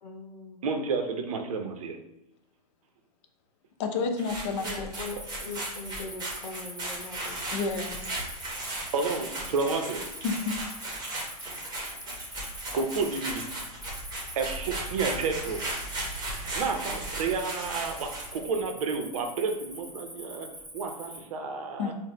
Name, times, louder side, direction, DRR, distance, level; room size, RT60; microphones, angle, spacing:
voice 1, 0.0-0.6 4.5-7.4 7.9-8.2, left 3 dB, 90° left, 2 dB, 0.7 m, -41 dB
voice 2, 0.6-2.0 8.9-10.1 12.7-13.5 14.4-15.6 16.5-20.5 20.7-21.9, right 4 dB, 60° right, 5 dB, 0.6 m, -30 dB
voice 3, 3.8-4.9 7.5-8.0 10.2-10.6 21.8-21.9, left 4 dB, 45° left, 5 dB, 0.5 m, -30 dB
sound 1, 4.2-18.4, right 1 dB, 20° right, 1.0 m, -36 dB
Cricket, 4.9-21.2, equal, ahead, 1.1 m, -43 dB
3.8 x 2.1 x 3.1 m, 0.90 s
hypercardioid pair, 115°, 21 cm